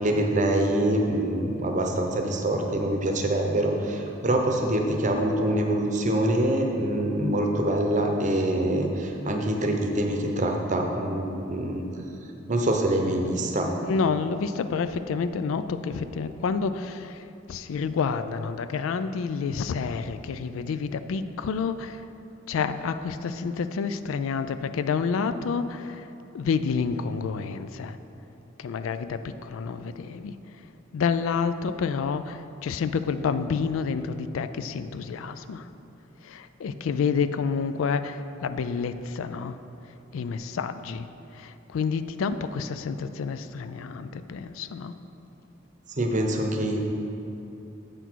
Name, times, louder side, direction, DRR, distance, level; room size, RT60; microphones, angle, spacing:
voice 1, 0.0-11.9 12.5-13.7 46.0-46.8, right 1 dB, 40° right, 2 dB, 0.7 m, -25 dB
voice 2, 13.8-22.1 22.5-28.0 28.6-30.7 30.9-35.7 36.2-39.6 40.1-45.0, left 5 dB, 85° left, 12 dB, 0.3 m, -29 dB
8.0 x 6.1 x 4.5 m, 2.9 s
head